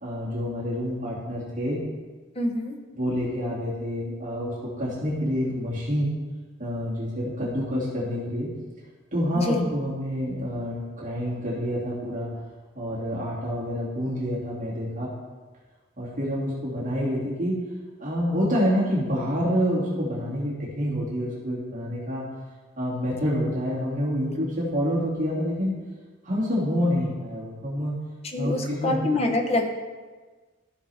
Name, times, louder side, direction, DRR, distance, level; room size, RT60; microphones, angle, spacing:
voice 1, 0.0-1.8 2.9-6.1 6.6-8.5 9.1-12.3 12.7-15.1 16.0-17.5 18.0-22.2 22.8-25.7 26.2-27.9 28.4-29.1, equal, 40° right, -8 dB, 2.6 m, -27 dB
voice 2, 2.3-2.8 9.3-9.7 24.3-24.4 28.2-29.7, left 2 dB, 30° left, 3 dB, 1.0 m, -26 dB
15.0 x 6.0 x 3.6 m, 1.4 s
head